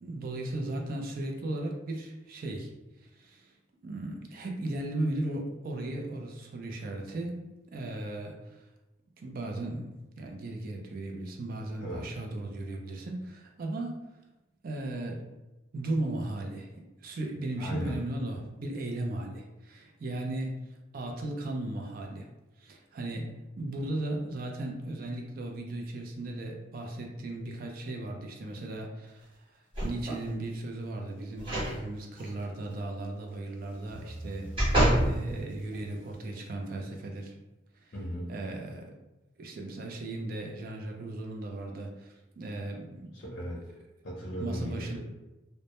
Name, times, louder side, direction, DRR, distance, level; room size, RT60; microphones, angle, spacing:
voice 1, 0.0-2.7 3.0-3.5 3.8-7.4 7.7-8.6 9.2-14.1 14.6-15.2 15.7-16.7 17.0-20.6 20.9-22.3 22.6-29.3 29.8-34.8 35.0-37.3 38.3-39.0 39.4-43.2 44.4-45.0, right 2 dB, 50° right, 1 dB, 0.4 m, -36 dB
voice 2, 17.6-18.0 37.9-38.3 43.1-43.8 44.0-45.0, equal, 55° left, -6 dB, 0.6 m, -37 dB
sound 1, 29.7-30.3 31.4-31.7 32.2-32.3 33.9-35.1 35.7-35.8, right 1 dB, 25° right, 0.7 m, -27 dB
2.1 x 2.0 x 2.8 m, 1.0 s
head